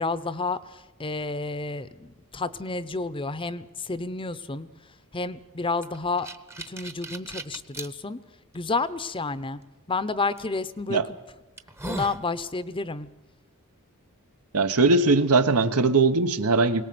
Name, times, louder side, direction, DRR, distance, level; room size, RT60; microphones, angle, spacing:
voice 1, 0.0-4.7 5.1-6.3 6.7-8.2 8.5-9.6 9.9-11.0 11.8-13.1, left 3 dB, 25° left, 14 dB, 0.7 m, -30 dB
sound 1, 5.8-7.9 8.5-8.6 10.4-10.6 11.1-11.2 11.6-12.2, right 1 dB, 10° right, 0.9 m, -37 dB
voice 2, 14.5-16.8, right 3 dB, 80° right, 9 dB, 1.2 m, -20 dB
22.0 x 18.5 x 7.7 m, 1.0 s
head